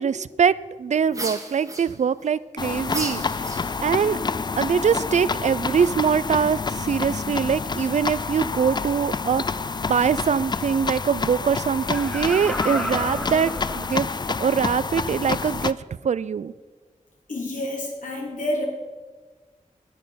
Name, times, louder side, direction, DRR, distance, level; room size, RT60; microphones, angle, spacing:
voice 1, 0.0-3.2 3.8-4.2 4.6-15.8 16.0-16.5, right 7 dB, 60° right, 18 dB, 0.4 m, -23 dB
sound 1, 1.1-2.3 2.9-4.0, right 2 dB, 25° right, 1.5 m, -33 dB
sound 2, 2.6-15.7, left 4 dB, 35° left, 0.4 m, -28 dB
Laughter, 11.8-14.4 14.9-15.0, left 1 dB, 5° left, 1.1 m, -32 dB
voice 2, 17.3-18.6, left 1 dB, 75° left, -2 dB, 3.1 m, -28 dB
10.5 x 10.0 x 5.1 m, 1.3 s
wide cardioid pair, 85°, 13 cm